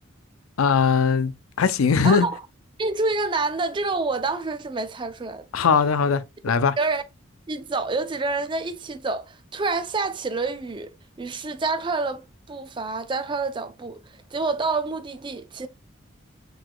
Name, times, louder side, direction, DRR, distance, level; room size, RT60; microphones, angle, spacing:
voice 1, 0.6-1.3 1.6-2.3 5.5-6.7, left 6 dB, 90° left, 0.5 m, -20 dB
voice 2, 2.0-2.4 2.8-5.5 6.8-7.0 7.5-10.9 11.2-15.7, right 3 dB, 25° right, 0.4 m, -27 dB
4.7 x 3.9 x 2.2 m
head